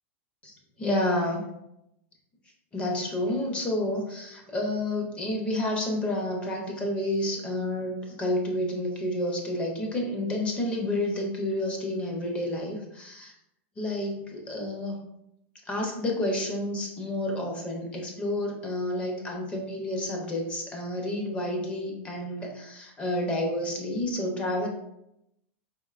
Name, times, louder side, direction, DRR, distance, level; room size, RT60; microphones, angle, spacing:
voice 1, 0.4-1.4 2.7-13.3 13.8-15.0 15.7-24.7, left 1 dB, 15° left, 1 dB, 0.6 m, -30 dB
4.2 x 2.7 x 2.4 m, 0.82 s
supercardioid pair, 155°, 7 cm